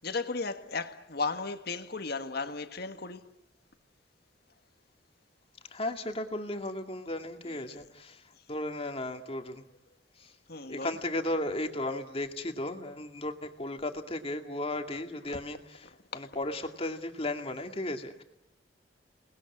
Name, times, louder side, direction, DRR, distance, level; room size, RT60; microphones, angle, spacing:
voice 1, 0.0-3.3 7.4-7.8 10.5-11.0 16.1-16.3, left 4 dB, 60° left, 1.7 m, -35 dB
voice 2, 5.7-8.2 8.5-9.6 10.2-10.3 10.7-18.2, left 1 dB, 35° left, 2.2 m, -35 dB
29.0 x 20.0 x 9.8 m
head